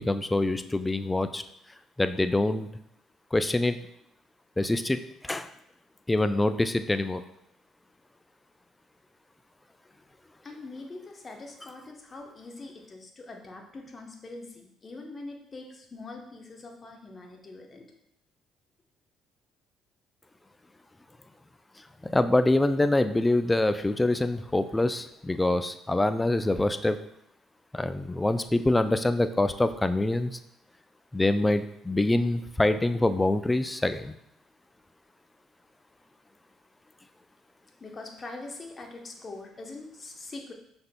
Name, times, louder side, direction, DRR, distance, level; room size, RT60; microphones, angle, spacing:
voice 1, 0.0-1.4 2.0-2.7 3.3-3.8 4.6-5.0 5.2-5.5 6.1-7.2 22.0-27.0 27.7-30.4 31.1-34.1, left 2 dB, 15° left, 11 dB, 0.3 m, -25 dB
voice 2, 10.4-17.9 31.9-32.0 37.8-40.5, left 2 dB, 35° left, 3 dB, 0.9 m, -43 dB
5.6 x 3.5 x 2.2 m, 0.75 s
hypercardioid pair, 55°, 0 cm